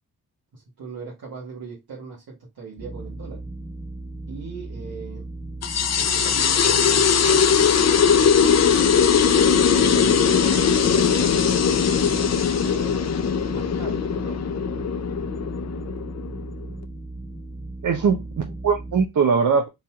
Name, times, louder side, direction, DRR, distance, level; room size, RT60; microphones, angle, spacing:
voice 1, 0.5-3.4 4.3-5.3 6.0-8.3 9.7-13.1 13.5-14.4, right 5 dB, 80° right, 1.4 m, -38 dB
sound 1, 2.8-19.1, right 2 dB, 5° left, 0.9 m, -36 dB
sound 2, 5.6-16.6, left 7 dB, 45° left, 0.5 m, -20 dB
voice 2, 17.8-19.7, right 6 dB, 55° right, 0.7 m, -21 dB
3.9 x 2.7 x 2.3 m
supercardioid pair, 40°, 36 cm